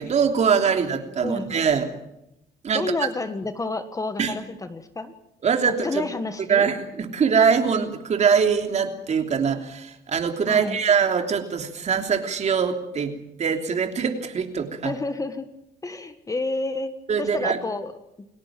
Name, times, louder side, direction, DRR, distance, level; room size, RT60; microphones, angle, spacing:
voice 1, 0.0-1.9 2.6-2.8 4.2-4.3 5.4-6.0 6.5-13.1 13.4-14.9 17.1-17.6, right 6 dB, 40° right, 5 dB, 3.2 m, -23 dB
voice 2, 1.2-1.6 2.7-5.1 5.8-6.7 10.5-10.8 14.8-15.5 15.8-16.9 17.2-17.9, left 3 dB, 20° left, 9 dB, 1.6 m, -30 dB
29.0 x 18.0 x 7.6 m, 0.86 s
cardioid pair, 110°, 17 cm